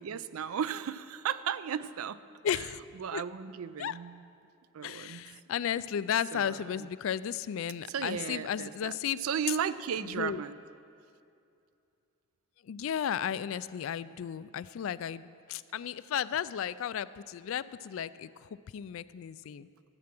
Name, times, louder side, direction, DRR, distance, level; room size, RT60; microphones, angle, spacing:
voice 1, 0.0-2.2 2.5-2.7 3.0-4.2 4.7-5.3 6.3-6.7 7.9-8.9 9.2-10.6, right 8 dB, 85° right, 15 dB, 0.4 m, -35 dB
voice 2, 2.4-2.8 3.1-3.2 3.8-4.0 4.8-9.2 10.0-10.4 12.6-19.7, left 9 dB, 70° left, 16 dB, 0.3 m, -34 dB
13.0 x 8.7 x 5.9 m, 2.5 s
head